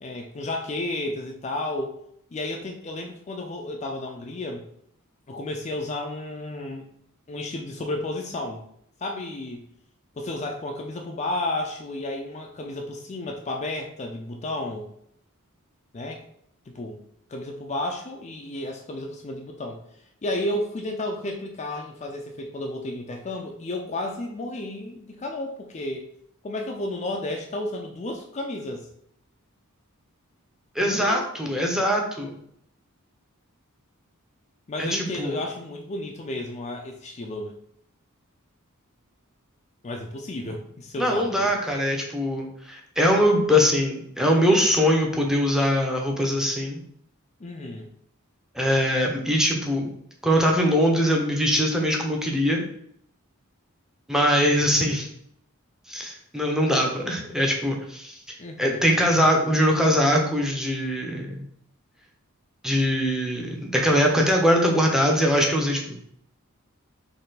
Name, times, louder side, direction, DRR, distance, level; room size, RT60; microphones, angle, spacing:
voice 1, 0.0-2.0 2.3-4.7 5.3-6.8 7.3-8.6 9.0-9.7 10.2-14.9 15.9-16.2 16.7-17.0 17.3-19.8 20.2-26.1 26.4-28.9 30.8-31.3 34.7-37.5 39.8-41.6 47.4-47.9 58.4-58.8, left 2 dB, 30° left, 2 dB, 0.4 m, -32 dB
voice 2, 30.7-32.3 34.8-35.4 41.0-46.8 48.5-49.9 50.2-52.7 54.1-55.1 55.9-58.2 58.6-61.4 62.6-66.0, equal, ahead, 0 dB, 0.7 m, -22 dB
4.4 x 2.8 x 4.0 m, 0.69 s
head